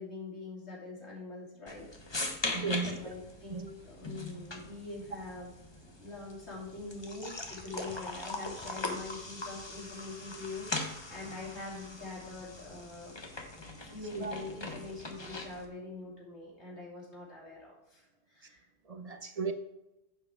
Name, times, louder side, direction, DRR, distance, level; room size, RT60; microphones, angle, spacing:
voice 1, 0.0-1.9 2.8-5.5 6.0-13.2 13.8-18.6, left 3 dB, 60° left, 3.4 m, -44 dB
sound 1, 1.7-15.7, left 2 dB, 25° left, 1.0 m, -41 dB
voice 2, 2.5-3.1 3.5-3.7 14.1-14.3 18.9-19.5, right 4 dB, 40° right, 0.7 m, -35 dB
10.5 x 7.3 x 3.6 m
omnidirectional pair, 1.3 m